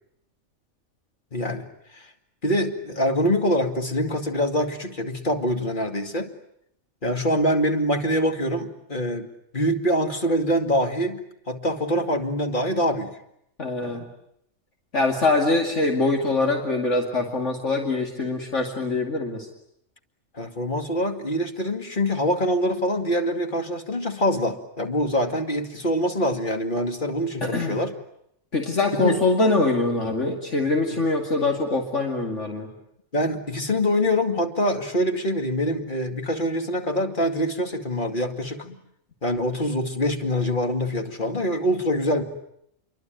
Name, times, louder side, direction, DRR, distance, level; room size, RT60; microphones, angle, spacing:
voice 1, 1.3-1.7 1.9-2.1 2.4-6.3 7.0-9.3 9.5-13.2 13.8-14.0 20.3-27.9 28.9-29.2 30.9-31.0 33.1-38.7 39.2-42.2, equal, 40° left, 5 dB, 2.4 m, -24 dB
voice 2, 13.6-14.0 14.9-19.5 27.4-27.8 28.5-32.7, left 3 dB, 65° left, 2 dB, 2.8 m, -23 dB
28.0 x 23.5 x 9.2 m, 0.75 s
omnidirectional pair, 1.3 m